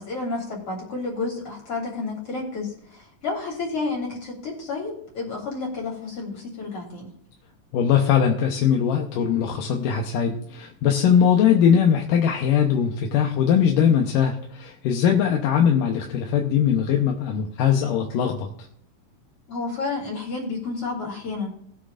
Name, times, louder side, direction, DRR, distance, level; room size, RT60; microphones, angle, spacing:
voice 1, 0.0-7.1 19.5-21.5, left 3 dB, 40° left, -2 dB, 4.1 m, -30 dB
voice 2, 7.7-18.5, left 8 dB, 80° left, 2 dB, 2.5 m, -20 dB
19.5 x 7.7 x 2.5 m, 0.67 s
omnidirectional pair, 3.9 m